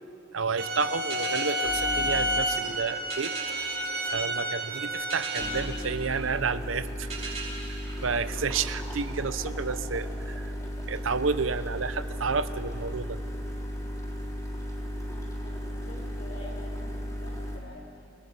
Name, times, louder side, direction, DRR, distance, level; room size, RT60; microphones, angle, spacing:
voice 1, 0.3-3.3 4.1-7.3 7.7-10.5 10.9-13.2, right 5 dB, 85° right, 13 dB, 0.8 m, -31 dB
sound 1, 0.6-5.6, right 1 dB, 55° right, 1.9 m, -30 dB
sound 2, 1.1-9.0, right 4 dB, 35° right, 6.9 m, -41 dB
sound 3, 1.6-2.6 5.4-17.6, equal, 15° left, 3.9 m, -35 dB
voice 2, 15.4-18.2, left 2 dB, 85° left, -3 dB, 4.3 m, -48 dB
29.0 x 19.0 x 5.4 m, 2.4 s
head